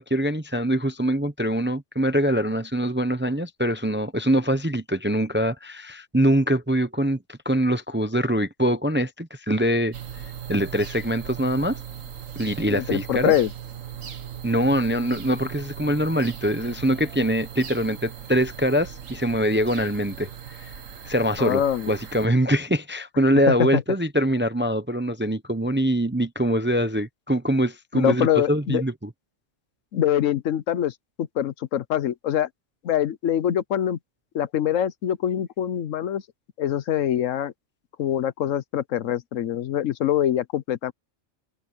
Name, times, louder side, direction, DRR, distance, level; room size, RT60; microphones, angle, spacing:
voice 1, 0.0-10.0 10.5-11.8 12.4-13.3 14.4-20.3 20.6-20.7 21.0-28.9, equal, 10° right, 0.6 m, -23 dB
sound 1, 9.9-22.3, right 8 dB, 80° right, 1.8 m, -38 dB
voice 2, 12.7-13.5 21.4-21.9 23.5-23.8 27.9-28.8 29.9-32.5 32.8-34.0 34.3-36.2 36.6-37.5 38.0-40.9, left 10 dB, 80° left, 1.1 m, -24 dB
omnidirectional pair, 1.3 m